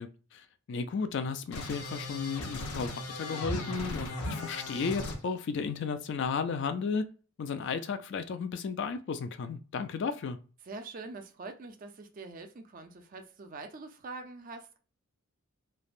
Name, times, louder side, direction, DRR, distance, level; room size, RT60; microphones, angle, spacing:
voice 1, 0.0-7.1 7.4-10.4, left 5 dB, 55° left, 0.3 m, -34 dB
sound 1, 1.5-5.2, left 2 dB, 85° left, 0.7 m, -37 dB
voice 2, 10.7-14.8, right 3 dB, 40° right, 0.4 m, -44 dB
3.2 x 2.1 x 2.4 m
head